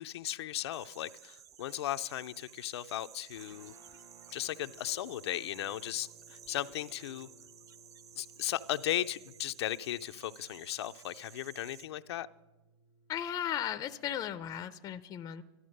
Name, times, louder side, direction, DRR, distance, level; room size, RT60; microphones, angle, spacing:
voice 1, 0.0-3.7 4.3-7.3 8.2-12.3, left 13 dB, 70° left, 10 dB, 0.5 m, -36 dB
sound 1, 0.7-11.9, right 9 dB, 25° right, 0.4 m, -55 dB
Guitar, 3.3-14.8, right 1 dB, 65° right, 5.9 m, -62 dB
voice 2, 13.1-15.4, left 10 dB, 25° left, 11 dB, 0.6 m, -36 dB
13.0 x 12.5 x 6.5 m, 1.1 s
hypercardioid pair, 130°, 14 cm